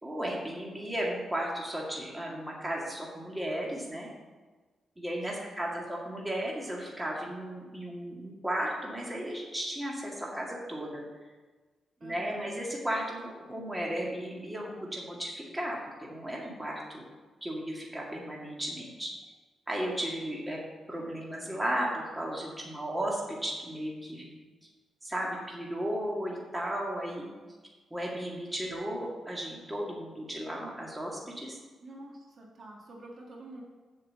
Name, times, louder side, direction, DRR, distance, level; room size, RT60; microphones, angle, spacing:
voice 1, 0.0-4.1 5.0-11.0 12.0-17.0 17.4-19.1 19.7-20.6 20.9-24.3 25.0-27.3 27.9-31.6, right 1 dB, 10° right, -3 dB, 2.1 m, -35 dB
voice 2, 5.3-5.9 12.0-12.4 20.9-21.0 31.8-33.6, right 1 dB, 50° right, -1 dB, 1.7 m, -48 dB
7.7 x 5.8 x 7.4 m, 1.3 s
cardioid pair, 120°, 0 cm